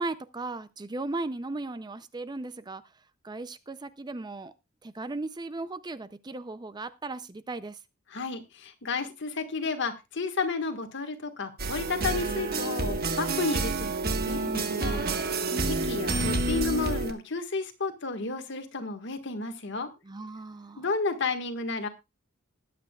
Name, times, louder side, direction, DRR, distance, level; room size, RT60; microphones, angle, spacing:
voice 1, 0.0-2.8 3.2-4.5 4.8-7.8 15.5-16.3 20.0-20.9, right 2 dB, 20° right, 13 dB, 0.5 m, -36 dB
voice 2, 8.1-15.0 15.7-19.9 20.8-21.9, left 4 dB, 60° left, 6 dB, 1.6 m, -32 dB
sound 1, 11.6-17.1, right 3 dB, 50° right, 1.4 m, -29 dB
20.0 x 8.5 x 2.3 m, 0.26 s
head